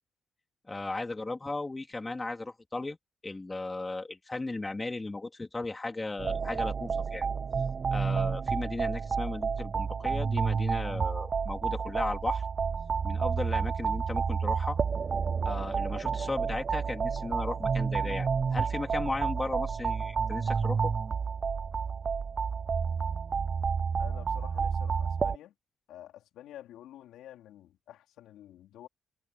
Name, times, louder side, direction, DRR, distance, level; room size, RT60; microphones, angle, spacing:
voice 1, 0.7-3.0 3.2-7.3 7.9-12.4 13.0-14.8 15.4-20.9, left 2 dB, 20° left, 3.3 m, -36 dB
sound 1, 6.2-25.4, right 6 dB, 45° right, 0.3 m, -30 dB
voice 2, 24.0-25.5 25.9-28.9, left 12 dB, 80° left, 4.0 m, -49 dB
cardioid pair, 80°, 0 cm